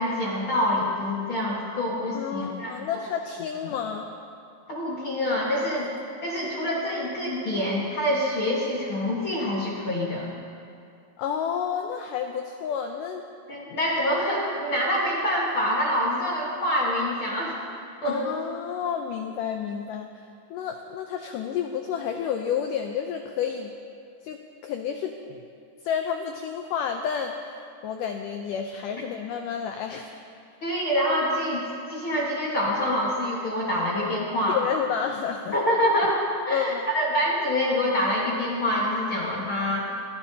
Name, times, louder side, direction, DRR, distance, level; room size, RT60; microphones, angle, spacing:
voice 1, 0.0-2.8 3.6-3.7 4.7-5.9 6.2-10.3 13.5-17.6 18.0-18.3 30.6-31.6 31.9-34.6 35.5-36.2 36.5-39.9, left 1 dB, 55° left, -5 dB, 1.5 m, -26 dB
voice 2, 2.1-4.1 11.2-13.2 18.0-20.1 20.5-23.7 24.2-25.4 25.8-27.3 27.8-30.1 34.5-35.6 36.5-36.8, left 8 dB, 90° left, 4 dB, 1.8 m, -30 dB
23.0 x 15.5 x 2.8 m, 2.4 s
omnidirectional pair, 4.5 m